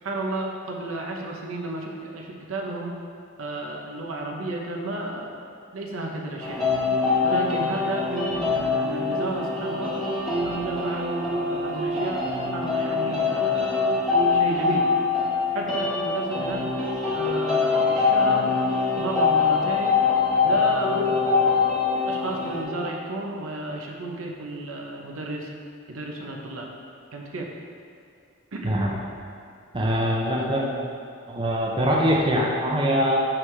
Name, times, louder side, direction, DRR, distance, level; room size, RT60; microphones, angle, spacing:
voice 1, 0.0-2.9 3.4-5.5 5.7-6.6 7.2-9.9 10.4-14.0 14.3-14.9 15.5-16.6 17.1-18.5 19.0-20.0 20.4-21.2 22.1-25.5 25.9-26.7 27.1-27.5 28.5-28.8, right 2 dB, 75° right, 0 dB, 0.8 m, -32 dB
sound 1, 6.4-22.6, left 4 dB, ahead, 1.2 m, -24 dB
voice 2, 29.7-30.7 31.3-33.3, equal, 25° right, -2 dB, 0.6 m, -23 dB
7.3 x 4.8 x 3.3 m, 2.4 s
head